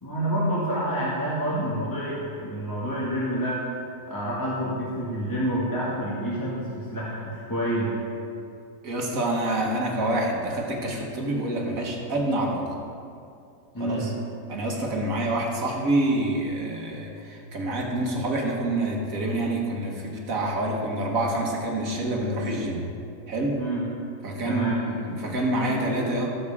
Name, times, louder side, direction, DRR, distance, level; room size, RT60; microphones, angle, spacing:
voice 1, 0.0-3.6 4.1-7.9 13.7-14.1 23.5-23.8 24.4-24.8, right 1 dB, 15° left, -7 dB, 1.8 m, -28 dB
voice 2, 8.8-12.7 13.8-14.1 14.5-22.8 23.3-23.6 24.2-26.3, right 1 dB, 65° right, 0 dB, 1.8 m, -27 dB
17.0 x 7.4 x 3.6 m, 2.5 s
omnidirectional pair, 1.6 m